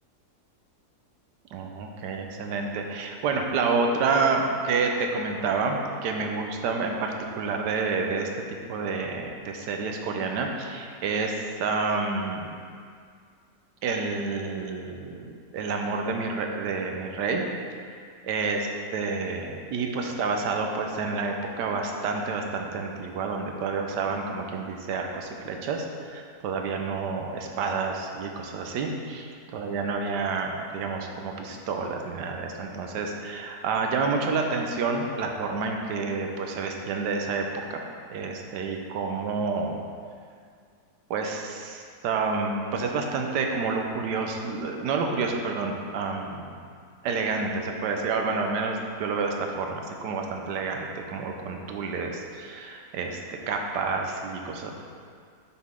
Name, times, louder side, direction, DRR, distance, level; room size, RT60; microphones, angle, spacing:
voice 1, 1.5-8.3 8.7-12.6 13.8-17.4 18.2-18.7 18.9-37.8 38.1-39.8 41.1-46.6 47.0-53.2 53.5-54.7, right 4 dB, 85° right, 2 dB, 1.3 m, -29 dB
6.2 x 5.8 x 3.6 m, 2.2 s
omnidirectional pair, 1.8 m